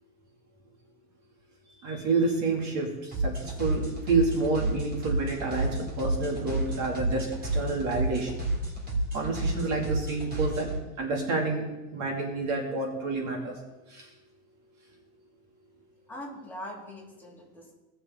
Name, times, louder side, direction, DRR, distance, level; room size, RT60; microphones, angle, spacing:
voice 1, 1.8-8.5 9.1-10.7 11.0-11.6 11.9-13.6 13.9-14.1, right 3 dB, 40° right, 0 dB, 2.4 m, -29 dB
sound 1, 3.1-10.8, right 1 dB, 20° right, 3.3 m, -30 dB
voice 2, 16.1-17.7, left 1 dB, 5° left, -5 dB, 3.1 m, -42 dB
18.0 x 6.8 x 3.7 m, 1.1 s
supercardioid pair, 130°, 42 cm